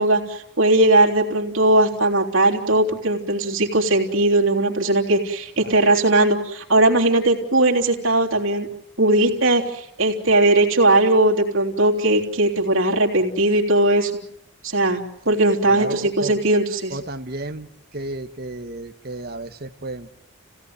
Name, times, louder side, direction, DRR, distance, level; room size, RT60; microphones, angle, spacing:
voice 1, 0.0-8.7 9.0-14.1 14.6-16.9, right 2 dB, 70° right, 0 dB, 3.5 m, -19 dB
voice 2, 5.6-5.9 15.7-16.4 16.9-20.1, right 2 dB, 45° right, 6 dB, 1.3 m, -32 dB
30.0 x 17.0 x 9.6 m, 0.80 s
head